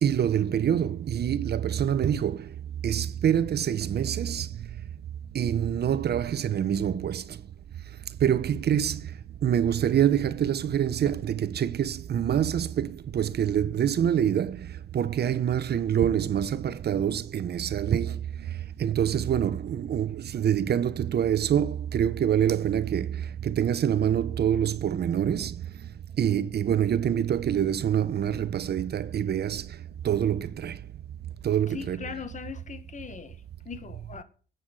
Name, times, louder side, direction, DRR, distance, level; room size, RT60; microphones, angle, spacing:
voice 1, 0.0-2.5 2.8-4.5 5.3-7.4 8.2-9.1 9.4-25.6 26.2-29.8 30.0-30.8 31.4-32.2, right 9 dB, 55° right, 1.0 m, -26 dB
voice 2, 31.7-33.4 33.7-34.2, left 6 dB, 40° left, 1.8 m, -40 dB
14.0 x 9.3 x 8.2 m
cardioid pair, 90°, 20 cm